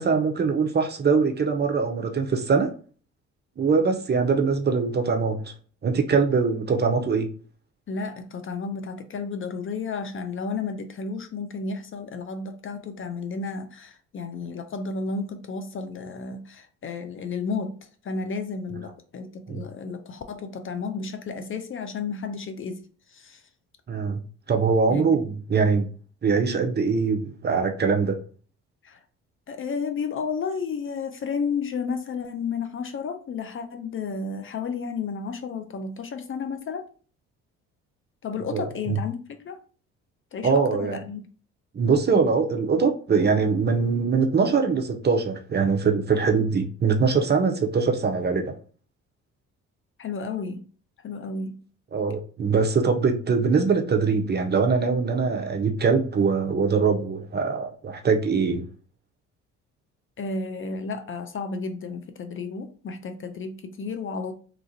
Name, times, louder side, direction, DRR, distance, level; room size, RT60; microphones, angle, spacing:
voice 1, 0.0-2.7 3.6-5.5 5.8-7.3 19.5-19.6 23.9-24.2 24.5-25.9 26.2-28.2 38.5-38.6 38.9-39.0 40.4-41.0 41.7-48.5 51.9-58.6, right 5 dB, 30° right, 0.6 m, -22 dB
voice 2, 7.9-17.8 18.0-23.4 24.9-25.2 28.8-29.0 29.5-36.9 38.2-39.6 40.3-41.3 50.0-50.6 51.0-51.6 60.2-64.3, left 5 dB, 35° left, 0.5 m, -32 dB
3.0 x 2.4 x 2.6 m
hypercardioid pair, 50°, 35 cm